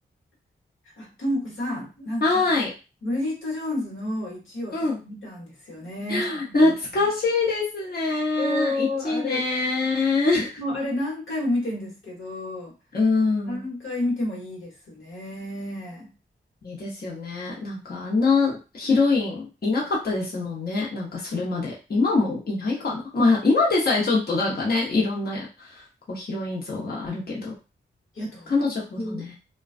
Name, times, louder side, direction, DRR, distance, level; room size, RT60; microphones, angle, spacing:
voice 1, 1.0-2.4 3.0-6.7 8.4-9.4 10.3-12.7 13.5-16.1 22.2-22.4 28.1-29.3, left 1 dB, 70° left, -2 dB, 1.1 m, -30 dB
voice 2, 2.2-2.7 4.7-5.0 6.1-10.5 12.9-13.6 16.6-27.5 28.5-29.3, left 3 dB, 50° left, -4 dB, 0.9 m, -24 dB
2.3 x 2.2 x 2.4 m, 0.30 s
cardioid pair, 45°, 21 cm